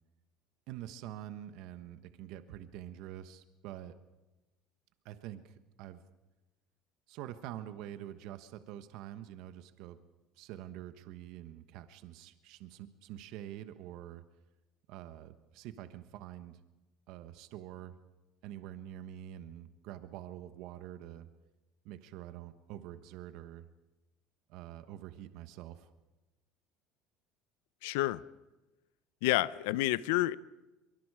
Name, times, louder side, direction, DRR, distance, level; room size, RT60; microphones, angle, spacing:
voice 1, 0.7-3.9 5.0-6.0 7.1-10.0 10.3-14.2 14.9-16.6 17.1-18.0 18.4-21.3 21.8-23.7 24.5-25.9, right 12 dB, 65° right, 10 dB, 1.2 m, -46 dB
voice 2, 27.8-28.2 29.2-30.4, left 17 dB, 90° left, 19 dB, 0.6 m, -29 dB
24.0 x 23.5 x 4.9 m, 1.1 s
cardioid pair, 135°, 0 cm